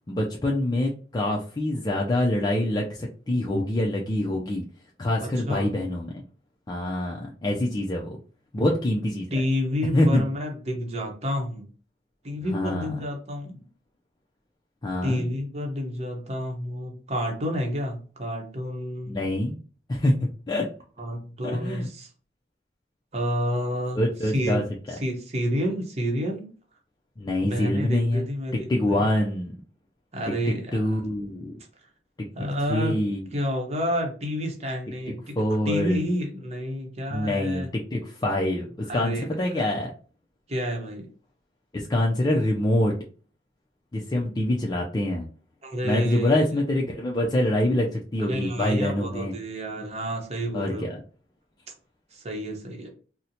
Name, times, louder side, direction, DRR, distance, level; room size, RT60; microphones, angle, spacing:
voice 1, 0.1-4.6 5.0-6.2 6.7-8.2 8.5-9.3 9.9-10.2 12.5-12.9 14.8-15.2 19.1-19.6 19.9-20.7 21.4-21.9 24.0-24.6 27.2-28.3 28.7-29.5 30.5-31.5 32.7-33.2 35.4-36.0 37.1-39.9 41.7-42.9 43.9-45.3 45.8-49.3 50.5-51.0, left 1 dB, 20° left, -2 dB, 0.4 m, -25 dB
voice 2, 5.2-5.7 9.3-11.7 12.2-13.6 15.0-19.2 21.0-22.1 23.1-24.6 25.0-26.5 27.4-29.1 30.1-30.8 32.3-33.0 33.3-37.7 38.9-39.3 40.5-41.1 45.6-46.3 48.2-50.9 52.1-52.9, equal, 35° right, 2 dB, 0.8 m, -29 dB
4.1 x 2.1 x 2.7 m, 0.40 s
head